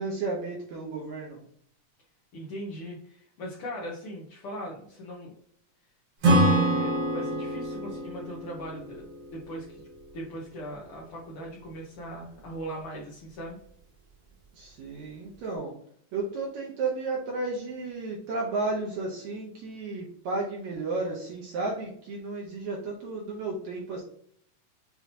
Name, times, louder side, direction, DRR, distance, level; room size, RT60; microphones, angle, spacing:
voice 1, 0.0-1.4 14.5-15.7 16.1-24.0, right 3 dB, 70° right, -2 dB, 1.9 m, -33 dB
voice 2, 2.3-5.3 6.2-9.1 9.3-9.9 10.1-13.6, right 1 dB, 80° left, -3 dB, 1.2 m, -39 dB
Acoustic guitar / Strum, 6.2-9.8, right 1 dB, 50° right, 1.6 m, -25 dB
7.0 x 2.8 x 2.7 m, 0.64 s
omnidirectional pair, 3.8 m